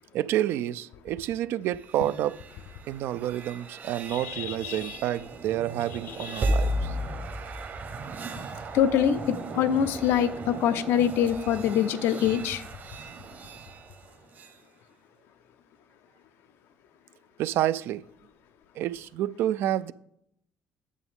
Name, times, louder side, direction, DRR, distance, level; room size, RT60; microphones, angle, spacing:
voice 1, 0.1-2.4 2.9-7.0 17.4-18.0 18.8-19.9, right 12 dB, 70° right, 0.3 m, -29 dB
sound 1, 1.7-14.6, right 1 dB, 50° right, 1.1 m, -35 dB
voice 2, 4.1-5.0 6.1-6.5 8.7-12.6, left 9 dB, 75° left, 0.6 m, -25 dB
8.3 x 7.0 x 3.6 m
supercardioid pair, 70°, 4 cm